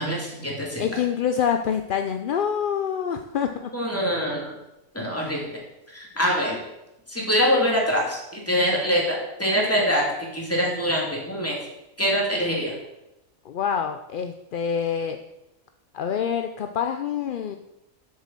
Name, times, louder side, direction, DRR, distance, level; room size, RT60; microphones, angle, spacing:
voice 1, 0.0-0.9 3.7-4.5 4.9-5.6 5.9-6.6 7.1-10.0 10.3-11.6 12.0-12.7, equal, 10° left, -3 dB, 2.8 m, -24 dB
voice 2, 0.8-3.7 5.2-5.5 13.5-15.2 15.9-17.6, left 8 dB, 55° left, 6 dB, 0.6 m, -26 dB
7.5 x 7.4 x 7.4 m, 0.92 s
omnidirectional pair, 1.4 m